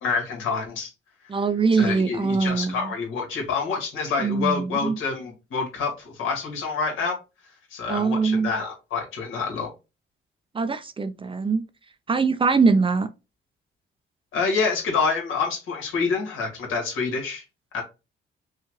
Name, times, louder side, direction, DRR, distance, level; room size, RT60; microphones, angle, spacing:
voice 1, 0.0-0.9 1.7-7.2 7.7-9.7 14.3-17.4 17.7-17.8, left 5 dB, 80° left, 1.9 m, -27 dB
voice 2, 1.3-2.9 4.2-5.0 7.9-8.5 10.5-11.6 12.1-13.1, right 4 dB, 25° right, 0.5 m, -22 dB
5.5 x 2.4 x 3.1 m
cardioid pair, 90°, 20 cm